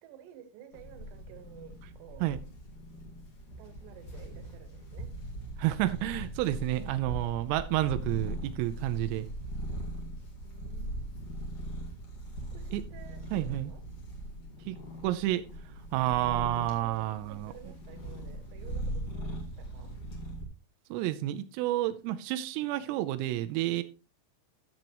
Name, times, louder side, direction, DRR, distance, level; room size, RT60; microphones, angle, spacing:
voice 1, 0.0-2.3 3.6-5.1 10.4-11.1 12.5-13.8 16.7-19.9, right 10 dB, 70° right, 3.1 m, -52 dB
sound 1, 0.7-20.4, right 1 dB, 50° left, 1.7 m, -40 dB
voice 2, 5.6-9.3 12.7-12.8 13.3-13.7 14.7-14.8 15.0-15.5 15.9-17.5 20.9-23.8, right 14 dB, 85° right, 3.4 m, -30 dB
13.5 x 7.6 x 3.0 m
omnidirectional pair, 5.9 m